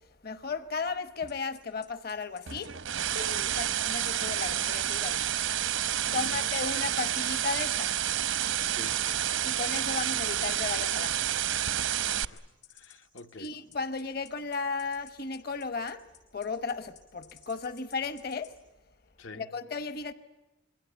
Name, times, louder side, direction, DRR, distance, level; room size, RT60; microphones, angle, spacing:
voice 1, 0.2-2.7 3.1-5.4 6.1-7.9 9.4-11.3 13.4-16.0 16.3-18.5 19.3-20.1, left 4 dB, 50° left, 1.0 m, -35 dB
sound 1, 1.3-18.5, left 11 dB, 65° left, 6.8 m, -55 dB
sound 2, 2.5-12.2, right 11 dB, 80° right, 0.9 m, -29 dB
voice 2, 6.0-6.4 8.7-9.0 12.1-12.4 12.7-13.5 19.2-19.5, left 2 dB, 85° left, 1.3 m, -47 dB
27.0 x 23.0 x 9.3 m
head